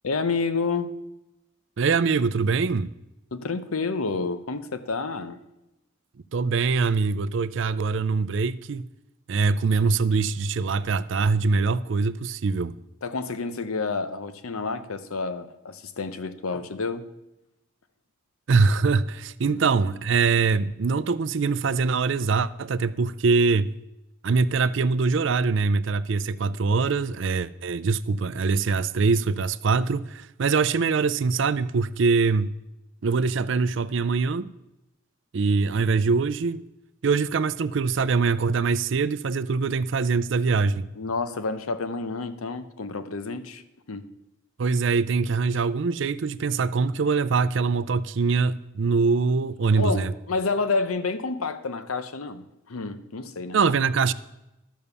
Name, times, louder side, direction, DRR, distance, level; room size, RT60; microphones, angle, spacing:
voice 1, 0.0-0.9 3.3-5.4 13.0-17.1 19.5-19.6 41.0-43.6 43.9-44.1 49.8-53.7, left 4 dB, 90° left, 0.8 m, -29 dB
voice 2, 1.8-2.9 6.3-8.9 9.3-12.7 18.5-23.7 24.2-32.5 33.0-34.5 35.3-36.6 37.0-40.9 44.6-50.1 53.5-54.1, right 4 dB, 60° right, 0.4 m, -23 dB
12.5 x 7.1 x 6.8 m
head